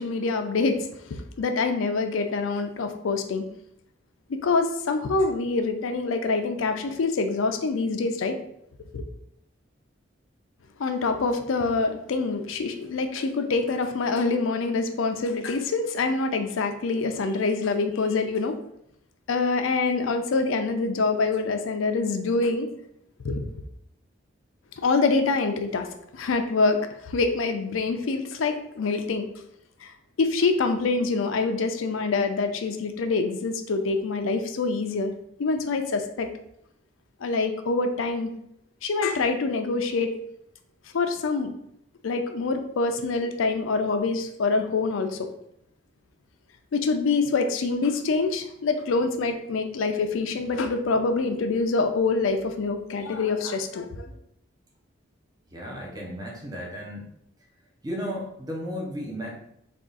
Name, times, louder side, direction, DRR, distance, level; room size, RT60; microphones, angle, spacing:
voice 1, 0.0-3.4 4.3-8.4 8.9-9.0 10.8-18.6 19.3-22.7 23.2-23.5 24.8-25.9 26.1-29.3 29.8-29.9 30.2-35.1 35.4-36.3 37.2-38.3 38.8-40.1 40.9-41.5 42.0-45.3 46.7-54.1, left 3 dB, 90° left, 7 dB, 0.5 m, -25 dB
voice 2, 55.5-57.1 57.8-59.3, equal, 20° right, -2 dB, 0.7 m, -34 dB
3.5 x 2.4 x 3.9 m, 0.74 s
head